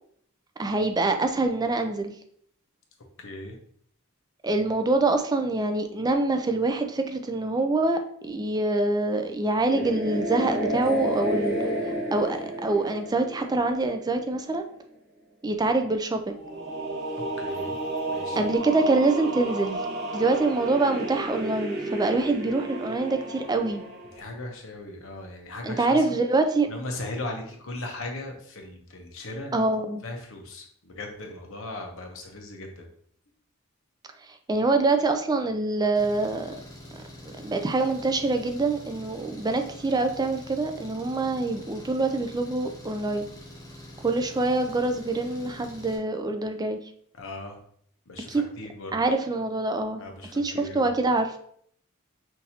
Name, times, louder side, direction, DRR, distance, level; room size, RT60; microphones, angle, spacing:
voice 1, 0.6-2.1 4.4-11.6 12.1-14.6 15.4-16.4 18.4-19.8 20.1-23.8 25.6-26.7 29.5-30.0 34.5-36.5 37.2-43.3 44.0-46.8 48.3-48.4 48.9-50.0 50.4-51.4, right 2 dB, 20° right, 6 dB, 0.4 m, -25 dB
voice 2, 3.2-3.6 17.4-17.8 18.1-18.5 24.1-26.1 26.7-29.7 30.0-32.9 47.1-47.6 48.1-49.0 50.0-50.9, left 2 dB, 65° left, 3 dB, 0.9 m, -38 dB
sound 1, 9.7-14.3 16.4-24.2, right 1 dB, 60° right, 1.3 m, -32 dB
Engine, 35.9-46.0, equal, 15° left, 0.9 m, -45 dB
5.8 x 2.6 x 2.8 m, 0.64 s
head